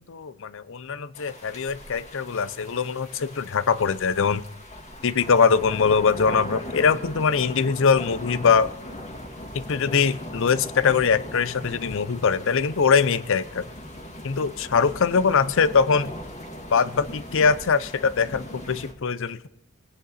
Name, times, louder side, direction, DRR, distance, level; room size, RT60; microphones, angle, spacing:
voice 1, 0.1-4.4 5.0-8.7 9.5-13.7 14.2-16.1 16.7-19.5, left 5 dB, 65° left, 16 dB, 0.6 m, -22 dB
sound 1, 1.1-18.9, equal, 35° left, 2.1 m, -39 dB
20.5 x 9.4 x 4.1 m, 0.77 s
head